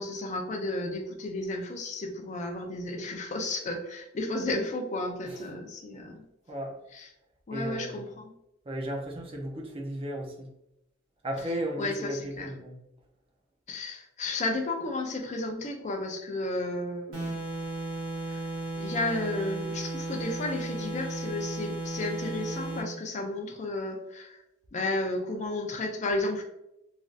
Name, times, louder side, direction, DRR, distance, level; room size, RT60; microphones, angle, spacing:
voice 1, 0.0-6.2 6.9-7.1 7.5-8.1 11.8-12.5 13.7-17.4 18.3-18.4 18.7-24.4 24.7-26.4, left 2 dB, 35° left, 3 dB, 0.4 m, -33 dB
voice 2, 7.5-8.0 8.7-10.5 11.2-12.8, right 1 dB, 25° right, -1 dB, 0.5 m, -35 dB
sound 1, 17.1-22.9, right 2 dB, 80° right, 1.4 m, -35 dB
3.2 x 2.6 x 2.4 m, 0.85 s
head